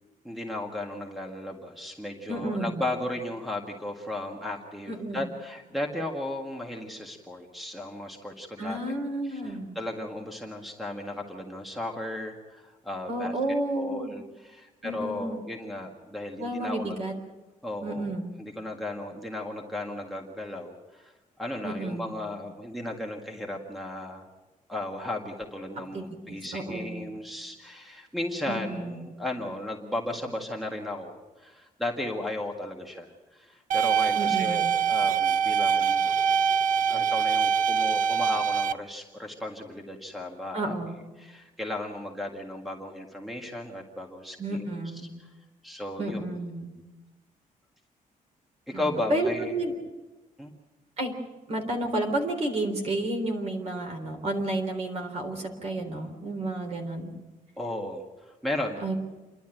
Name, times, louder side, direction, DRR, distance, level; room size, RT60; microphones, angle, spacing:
voice 1, 0.2-8.9 9.2-13.3 13.7-17.0 17.6-18.1 18.4-21.1 21.4-24.3 24.7-36.4 36.9-40.8 41.2-44.7 45.2-45.3 45.6-46.2 48.7-49.6 50.4-50.5 57.6-58.8, left 1 dB, ahead, 2 dB, 1.7 m, -35 dB
voice 2, 2.3-2.9 4.9-5.3 8.6-9.8 13.1-14.2 14.8-15.4 16.4-17.1 17.8-18.3 21.6-22.1 25.9-27.1 28.5-29.1 34.1-34.8 40.5-41.0 44.4-45.1 46.0-46.7 48.7-49.7 51.0-51.1 51.5-57.1 58.8-58.9, right 1 dB, 50° right, 4 dB, 3.7 m, -31 dB
sound 1, 33.7-38.7, right 7 dB, 75° right, 0.6 m, -24 dB
28.5 x 11.5 x 9.1 m, 1.2 s
wide cardioid pair, 175°, 14 cm